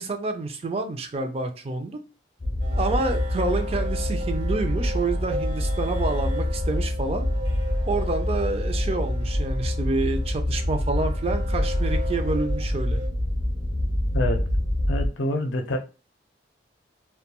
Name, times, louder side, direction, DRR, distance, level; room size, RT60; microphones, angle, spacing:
voice 1, 0.0-2.0 2.8-7.3 7.9-13.0, right 3 dB, 35° right, 0.3 m, -28 dB
sound 1, 2.4-15.1, left 1 dB, 30° left, 0.5 m, -26 dB
sound 2, 2.6-13.1, equal, 80° right, 0.9 m, -37 dB
voice 2, 14.1-14.5 14.9-15.8, left 1 dB, 90° left, 0.5 m, -26 dB
2.2 x 2.2 x 2.8 m
head